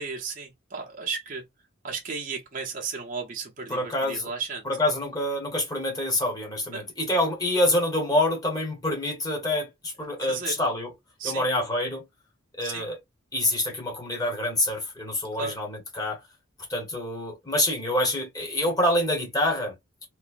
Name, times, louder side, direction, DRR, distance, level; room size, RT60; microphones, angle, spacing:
voice 1, 0.0-1.4 1.8-4.7 6.7-6.8 10.2-10.6 11.2-11.5 12.6-12.9 15.3-15.6, right 5 dB, 40° right, 0.7 m, -34 dB
voice 2, 3.7-4.3 4.6-10.9 11.2-12.0 12.6-13.0 13.3-16.2 16.7-19.7, left 1 dB, 20° left, 1.0 m, -26 dB
3.0 x 2.7 x 2.5 m
head